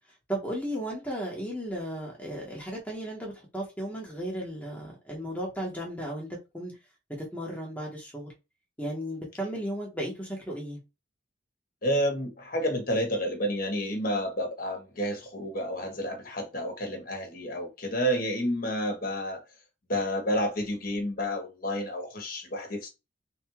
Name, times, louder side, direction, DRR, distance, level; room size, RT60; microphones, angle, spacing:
voice 1, 0.3-6.3 6.5-6.7 7.3-8.3 8.8-10.8, equal, 10° left, 1.2 m, -35 dB
voice 2, 11.8-19.4 19.9-22.9, equal, 45° left, 1.3 m, -30 dB
3.6 x 2.6 x 4.6 m
head